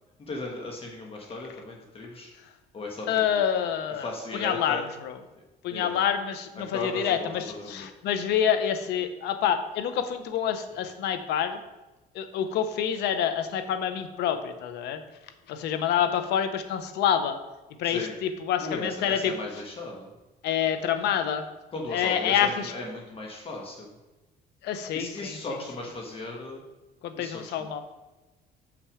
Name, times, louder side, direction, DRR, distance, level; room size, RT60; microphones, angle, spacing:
voice 1, 0.2-2.3 2.7-3.4 3.9-4.9 5.7-6.0 6.6-7.9 17.8-18.1 18.6-20.1 21.7-24.0 24.9-26.6 27.1-27.7, left 2 dB, 35° left, 0 dB, 1.3 m, -37 dB
voice 2, 3.1-5.2 5.6-11.6 12.1-15.0 15.5-17.4 17.8-19.3 20.4-21.4 21.9-22.7 24.6-25.4 27.0-27.8, left 9 dB, 80° left, 9 dB, 0.8 m, -27 dB
6.8 x 6.0 x 4.9 m, 1.1 s
cardioid pair, 110°, 17 cm